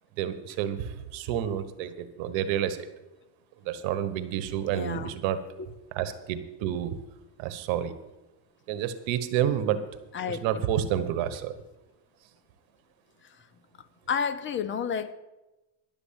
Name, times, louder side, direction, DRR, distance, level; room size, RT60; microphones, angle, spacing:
voice 1, 0.2-2.9 3.6-5.4 5.9-7.0 7.4-7.9 8.7-9.8 10.3-11.5, right 10 dB, 70° right, 12 dB, 1.3 m, -29 dB
voice 2, 4.7-5.1 10.1-10.4 14.1-15.1, left 6 dB, 25° left, 12 dB, 0.5 m, -30 dB
11.0 x 7.1 x 8.7 m, 1.0 s
cardioid pair, 135°, 47 cm